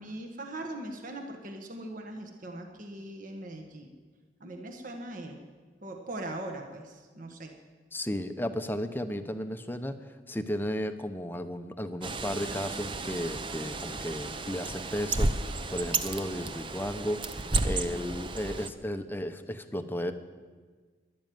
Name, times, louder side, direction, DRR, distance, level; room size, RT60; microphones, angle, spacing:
voice 1, 0.0-3.9 4.4-5.4 5.8-7.5 17.9-18.2, right 1 dB, 45° right, 3 dB, 1.4 m, -40 dB
voice 2, 7.9-10.0 10.3-20.1, equal, 10° left, 8 dB, 0.7 m, -34 dB
Bird, 12.0-18.7, right 3 dB, 25° right, 0.7 m, -33 dB
12.5 x 11.5 x 9.3 m, 1.5 s
head